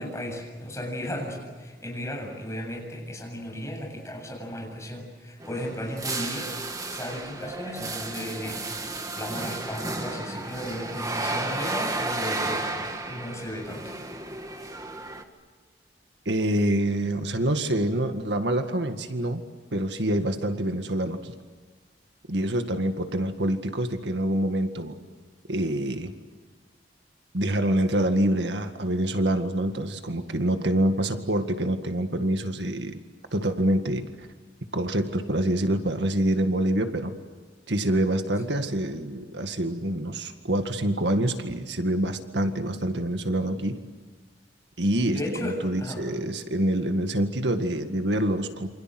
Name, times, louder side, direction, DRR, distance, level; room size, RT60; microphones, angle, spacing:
voice 1, 0.0-6.5 6.9-13.9 45.1-46.0, equal, 15° left, 1 dB, 7.6 m, -35 dB
sound 1, 5.4-15.2, right 2 dB, 20° right, 1.9 m, -33 dB
voice 2, 16.3-19.4 19.7-21.3 22.3-25.0 25.5-26.1 27.3-33.0 33.3-34.3 34.7-37.1 37.7-43.8 44.8-48.7, right 1 dB, 75° right, 7 dB, 1.9 m, -26 dB
28.0 x 26.5 x 7.9 m, 1.4 s
head